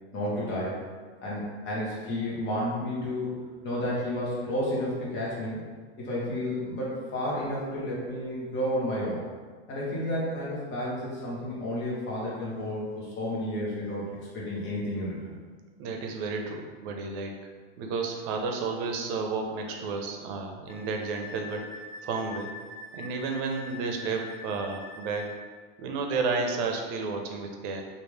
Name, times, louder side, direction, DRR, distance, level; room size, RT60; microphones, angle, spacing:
voice 1, 0.1-0.8 1.2-3.3 3.6-5.6 6.0-9.2 9.7-14.1 14.3-15.3, left 1 dB, 35° left, -6 dB, 1.1 m, -31 dB
voice 2, 15.8-17.3 17.8-21.7 22.0-22.5 22.9-25.3 25.8-27.8, right 4 dB, 55° right, 3 dB, 0.6 m, -31 dB
Wind instrument woodwind instrument, 20.7-25.4, left 3 dB, 60° left, 0.7 m, -44 dB
3.1 x 2.5 x 3.2 m, 1.5 s
supercardioid pair, 120°, 32 cm